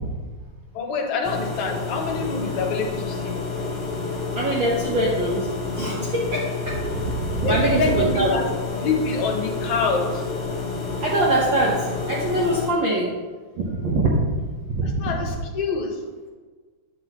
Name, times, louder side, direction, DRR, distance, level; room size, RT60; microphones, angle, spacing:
voice 1, 0.7-3.4 7.3-8.5 8.8-10.2 14.8-16.0, left 4 dB, 75° left, 2 dB, 2.3 m, -26 dB
sound 1, 1.2-12.7, left 4 dB, 40° left, 1.8 m, -29 dB
voice 2, 4.4-5.5 5.7-8.3 11.0-13.2 13.8-14.4 14.7-15.1, right 1 dB, 65° right, -4 dB, 1.2 m, -23 dB
9.3 x 7.7 x 2.9 m, 1.4 s
omnidirectional pair, 3.4 m